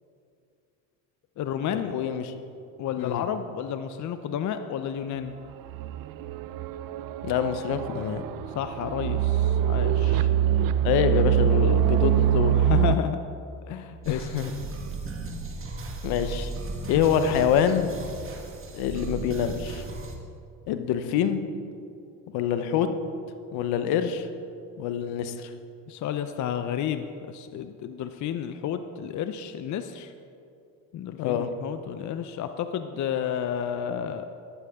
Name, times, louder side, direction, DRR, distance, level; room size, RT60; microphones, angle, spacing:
voice 1, 1.4-1.9 2.8-5.4 8.5-10.3 12.5-13.2 13.7-14.3 25.9-30.1 30.9-34.3, left 9 dB, 45° left, 9 dB, 0.7 m, -31 dB
voice 2, 1.9-2.3 3.0-3.2 7.2-8.2 10.8-12.6 14.1-14.5 16.0-16.5 16.9-17.9 18.7-19.8 20.7-21.4 22.3-22.9 23.5-24.3 24.8-25.5 31.2-31.5, left 8 dB, 70° left, 9 dB, 1.0 m, -25 dB
sound 1, 5.7-13.0, right 10 dB, 55° right, 0.6 m, -24 dB
sound 2, 14.0-20.1, right 3 dB, 30° right, 1.8 m, -36 dB
12.5 x 12.5 x 3.7 m, 2.5 s
supercardioid pair, 80°, 39 cm